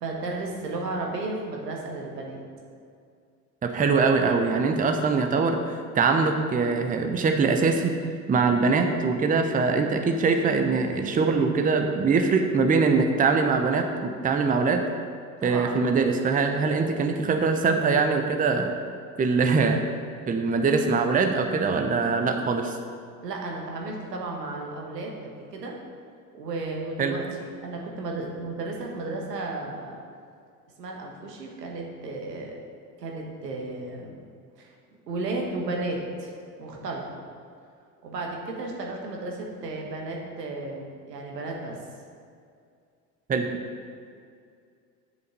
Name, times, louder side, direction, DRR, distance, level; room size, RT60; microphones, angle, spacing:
voice 1, 0.0-2.4 15.4-15.8 23.2-25.7 26.3-30.0 30.8-32.5 33.0-34.2 34.6-34.7 35.1-37.0 38.0-41.8, right 2 dB, 75° right, 0 dB, 1.7 m, -33 dB
voice 2, 3.6-7.9 8.3-14.9 15.4-18.7 19.2-19.8 20.3-22.8 27.0-27.1 43.3-43.5, right 4 dB, 15° right, 5 dB, 0.8 m, -23 dB
8.1 x 6.7 x 5.3 m, 2.3 s
figure-of-eight pair, 70°, 48 cm